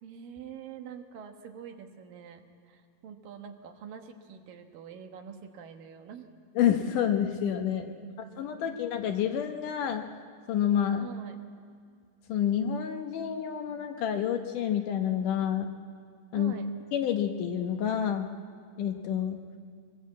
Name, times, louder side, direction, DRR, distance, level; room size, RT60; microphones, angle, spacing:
voice 1, 0.0-6.3 7.6-8.8 11.0-11.4 16.3-16.7, right 8 dB, 70° right, 5 dB, 2.9 m, -46 dB
voice 2, 6.6-7.9 8.4-10.1 10.5-11.1 12.3-15.7 16.3-16.5 16.9-18.3 18.8-19.4, left 9 dB, 70° left, 6 dB, 2.3 m, -28 dB
24.0 x 19.5 x 8.4 m, 2.1 s
omnidirectional pair, 4.2 m